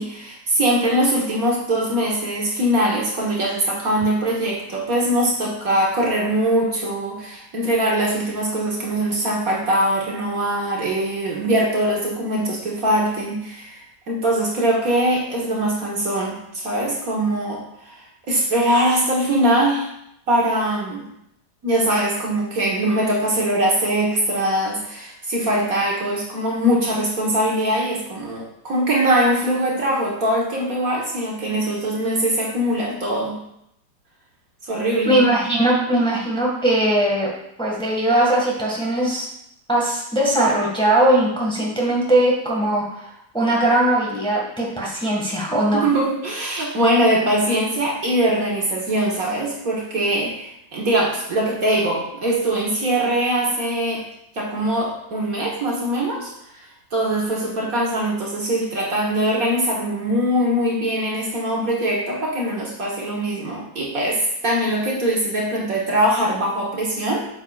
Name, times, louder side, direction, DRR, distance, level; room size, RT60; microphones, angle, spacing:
voice 1, 0.0-19.9 20.3-21.1 21.6-33.3 34.6-35.2 45.7-54.0 54.3-67.3, right 1 dB, 55° right, -3 dB, 1.8 m, -22 dB
voice 2, 35.0-37.3 37.6-39.3 39.7-45.8, right 1 dB, 5° left, -4 dB, 1.7 m, -20 dB
8.9 x 7.3 x 2.4 m, 0.77 s
omnidirectional pair, 1.9 m